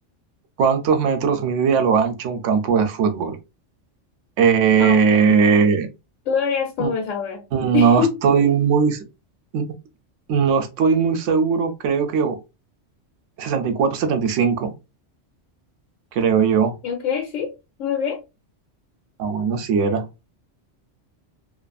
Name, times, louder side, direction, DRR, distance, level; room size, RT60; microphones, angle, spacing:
voice 1, 0.6-3.4 4.4-5.9 6.8-6.9 7.5-9.0 9.5-9.6 10.3-12.4 13.4-14.7 16.1-16.8 19.2-20.1, right 6 dB, 80° right, 0.9 m, -19 dB
voice 2, 4.8-5.6 6.3-7.4 7.7-8.2 16.8-17.5 17.8-18.2, left 6 dB, 85° left, 1.0 m, -24 dB
2.5 x 2.5 x 2.2 m
omnidirectional pair, 1.3 m